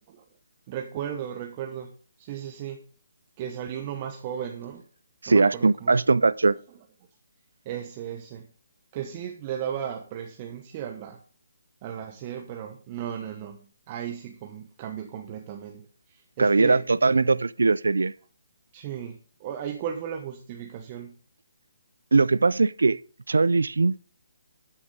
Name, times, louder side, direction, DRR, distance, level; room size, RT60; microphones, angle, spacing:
voice 1, 0.7-2.8 3.4-4.9 5.3-6.3 7.6-8.5 8.9-11.2 11.8-16.9 18.7-21.2, right 9 dB, 30° right, 1.2 m, -36 dB
voice 2, 5.2-6.6 16.4-18.1 22.1-23.0 23.3-24.0, right 3 dB, 85° right, 0.4 m, -20 dB
13.0 x 7.2 x 3.9 m
hypercardioid pair, 155°, 0 cm